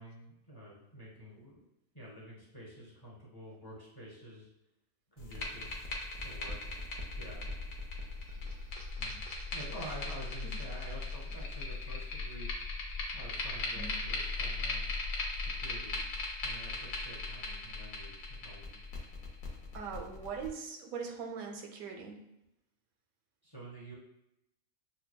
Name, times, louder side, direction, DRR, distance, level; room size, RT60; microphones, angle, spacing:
voice 1, 0.0-1.6 1.9-4.5 5.1-6.6 7.2-7.5 8.3-8.5 8.9-9.2 9.5-12.5 13.1-14.9 15.3-16.0 16.4-18.8 23.4-24.0, right 1 dB, 20° left, -5 dB, 0.9 m, -48 dB
sound 1, 5.2-20.5, left 3 dB, 75° left, 1.2 m, -38 dB
voice 2, 19.7-22.2, right 5 dB, 85° right, 3 dB, 1.1 m, -41 dB
6.5 x 2.2 x 2.2 m, 0.86 s
omnidirectional pair, 1.5 m